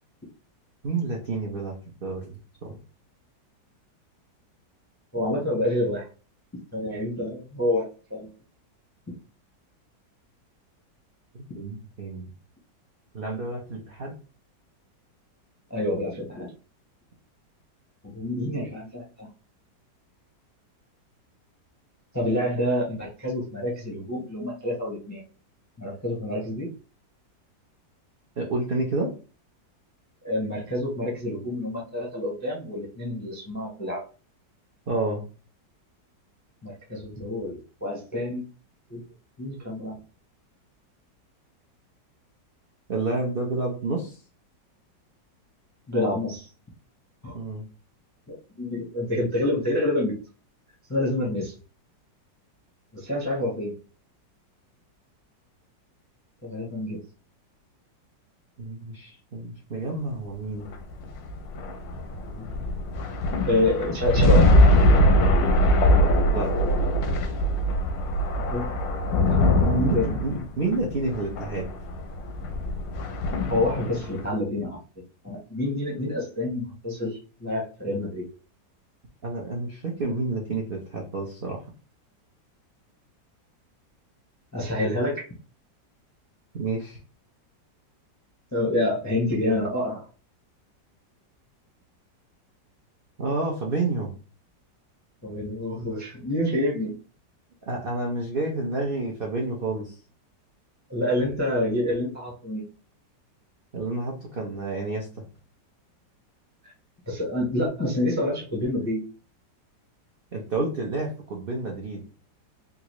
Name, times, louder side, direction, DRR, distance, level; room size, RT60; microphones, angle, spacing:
voice 1, 0.8-1.7 2.0-2.8 11.3-12.3 13.1-14.1 28.4-29.1 34.9-35.2 42.9-44.2 47.3-47.6 58.6-60.7 66.3-66.5 69.6-71.7 79.2-81.6 86.5-87.0 93.2-94.1 97.7-100.0 103.7-105.1 110.3-112.0, right 3 dB, 70° right, -1 dB, 0.5 m, -29 dB
voice 2, 5.1-6.1 6.7-8.3 15.7-16.5 18.0-19.3 22.1-25.2 25.8-26.7 30.2-34.0 36.6-38.4 38.9-39.0 39.4-40.0 45.9-46.5 47.2-47.4 48.3-50.1 50.9-51.5 52.9-53.7 56.4-57.0 62.2-62.5 63.5-64.5 68.4-68.7 69.3-69.4 69.7-70.4 73.5-74.8 75.2-78.3 84.5-85.3 88.5-90.1 95.2-96.9 100.9-102.7 106.6-106.7 107.1-109.0, left 1 dB, 20° left, -3 dB, 0.4 m, -27 dB
sound 1, 60.6-74.2, left 1 dB, 85° left, 1.3 m, -22 dB
3.8 x 2.4 x 3.0 m, 0.36 s
omnidirectional pair, 2.0 m